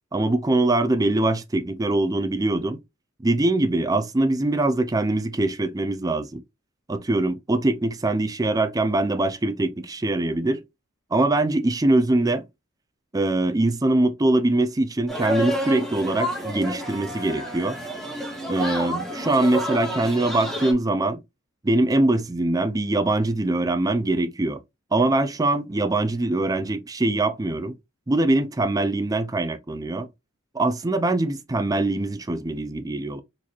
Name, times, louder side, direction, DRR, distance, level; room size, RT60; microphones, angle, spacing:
voice 1, 0.1-2.8 3.2-6.4 6.9-10.6 11.1-12.4 13.1-17.8 18.5-21.2 21.6-24.6 24.9-27.8 28.1-30.1 30.5-33.2, right 2 dB, 15° right, 0.4 m, -23 dB
sound 1, 15.1-20.7, equal, ahead, 1.1 m, -30 dB
4.0 x 3.0 x 2.6 m
head